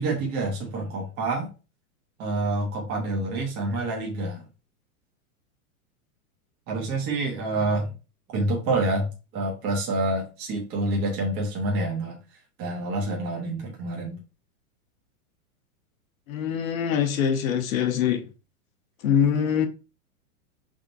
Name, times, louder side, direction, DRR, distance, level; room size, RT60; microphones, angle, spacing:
voice 1, 0.0-1.5 2.2-4.4 6.7-7.9 8.3-12.2 12.6-14.2, right 2 dB, 20° right, 0.9 m, -27 dB
voice 2, 16.3-18.3 19.0-19.7, left 8 dB, 65° left, 1.0 m, -23 dB
5.5 x 3.7 x 2.5 m
supercardioid pair, 160°, 44 cm